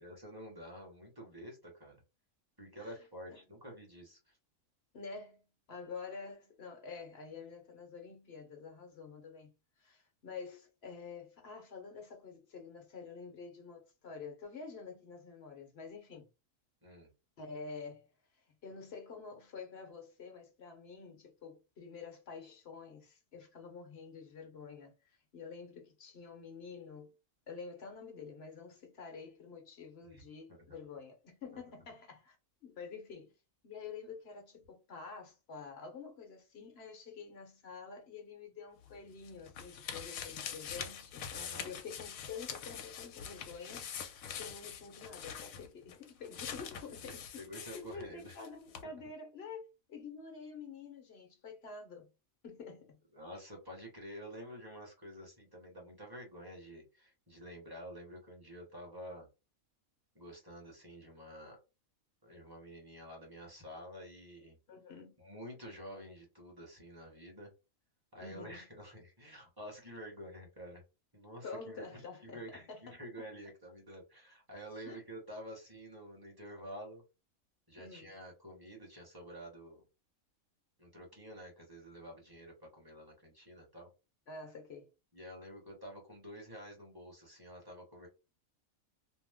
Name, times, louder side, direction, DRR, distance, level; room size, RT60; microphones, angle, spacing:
voice 1, 0.0-2.0 2.6-4.4 16.8-17.1 30.0-30.2 30.5-30.8 41.3-41.7 46.7-48.4 48.8-48.9 53.1-59.3 60.1-61.6 62.2-64.6 65.2-67.5 68.1-70.8 71.1-77.0 77.7-79.8 80.8-83.9 85.1-88.1, equal, 20° right, 1.1 m, -49 dB
voice 2, 4.9-9.5 9.8-16.3 17.4-18.1 18.6-27.1 27.5-32.4 32.6-33.3 33.6-43.9 44.4-47.4 47.7-52.1 52.4-53.0 64.7-65.2 68.2-68.6 71.4-73.0 74.9-75.0 77.8-78.1 84.3-84.9, left 5 dB, 55° left, 0.9 m, -48 dB
sound 1, 38.8-48.5 48.7-48.8, left 8 dB, 85° left, 1.0 m, -44 dB
2.8 x 2.1 x 3.5 m
omnidirectional pair, 1.4 m